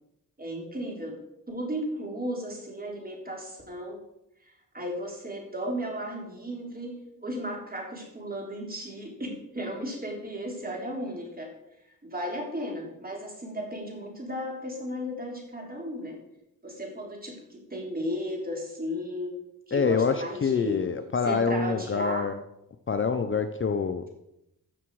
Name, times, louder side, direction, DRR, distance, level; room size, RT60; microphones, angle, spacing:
voice 1, 0.4-1.2 1.5-4.0 4.7-11.5 12.0-16.2 16.6-19.4 19.7-20.8 21.2-22.3, equal, 25° right, 0 dB, 3.5 m, -35 dB
voice 2, 19.7-22.4 22.9-24.0, left 5 dB, 35° left, 8 dB, 0.7 m, -26 dB
14.0 x 6.9 x 4.8 m, 0.84 s
cardioid pair, 95°, 35 cm